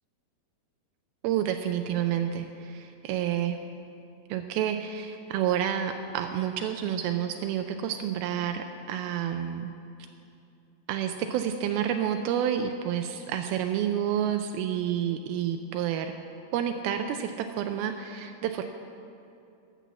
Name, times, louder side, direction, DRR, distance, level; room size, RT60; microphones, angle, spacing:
voice 1, 1.2-3.6 4.3-9.7 10.9-16.1 16.5-18.7, right 9 dB, 85° right, 6 dB, 2.4 m, -29 dB
12.5 x 7.0 x 7.3 m, 2.6 s
omnidirectional pair, 4.3 m